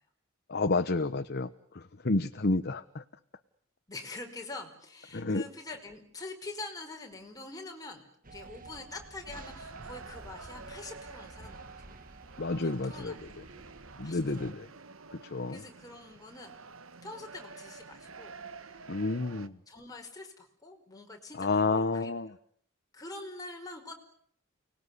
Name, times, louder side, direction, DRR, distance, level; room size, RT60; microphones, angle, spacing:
voice 1, 0.5-3.0 5.1-5.4 12.4-13.1 14.0-14.7 15.1-15.6 18.9-19.6 21.4-22.3, left 3 dB, 50° left, 9 dB, 1.1 m, -30 dB
voice 2, 3.9-8.0 8.3-12.0 12.6-13.6 14.0-14.5 15.5-16.6 17.0-18.4 18.6-22.1 22.9-23.9, left 2 dB, 20° left, 2 dB, 5.1 m, -45 dB
sound 1, 8.2-14.5, right 2 dB, 45° right, 1.8 m, -50 dB
sound 2, 9.3-19.5, right 4 dB, 75° right, 1.5 m, -49 dB
30.0 x 20.0 x 9.8 m, 0.65 s
head